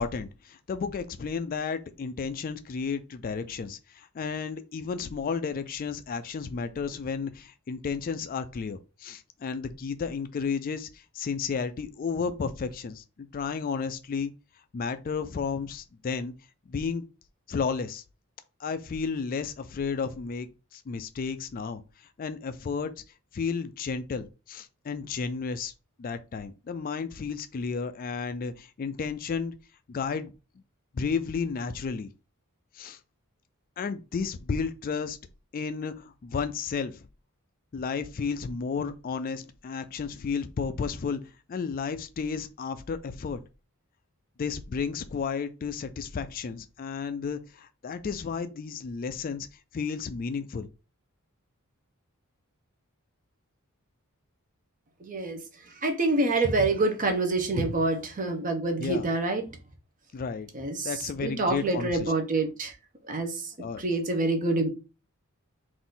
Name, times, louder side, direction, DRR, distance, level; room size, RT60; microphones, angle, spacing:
voice 1, 0.0-14.3 14.7-16.3 16.7-17.0 17.5-18.0 18.6-22.9 23.3-25.7 26.0-29.5 29.9-30.3 30.9-32.1 32.7-33.0 33.8-35.2 35.5-37.1 37.7-41.2 41.5-43.4 44.4-49.5 49.7-50.7 58.8-59.1 60.1-60.5 60.8-62.1 63.6-63.8, left 5 dB, 40° left, 0.3 m, -32 dB
voice 2, 55.0-59.4 60.5-62.8 63.0-64.7, right 2 dB, 35° right, 0.8 m, -27 dB
4.0 x 2.6 x 3.7 m
head